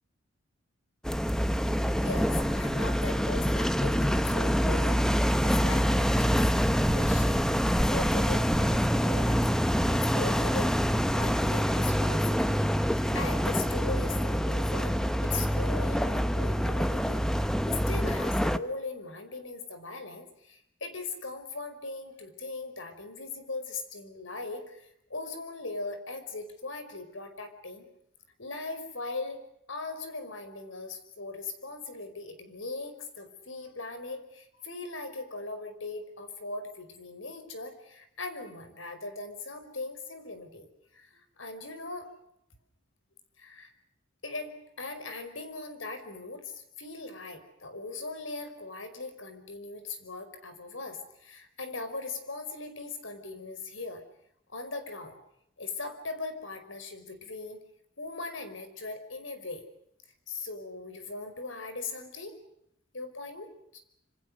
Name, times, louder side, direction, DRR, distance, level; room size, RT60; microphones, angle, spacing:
sound 1, 1.0-18.6, equal, 5° left, 0.9 m, -26 dB
voice 1, 2.0-12.6 13.1-27.9 28.4-29.4 29.7-40.7 40.9-42.1 43.4-43.7 44.2-54.0 54.5-55.2 55.6-57.6 58.0-59.6 60.3-62.4 62.9-63.8, left 3 dB, 80° left, 9 dB, 5.2 m, -40 dB
27.0 x 26.5 x 6.5 m, 0.78 s
head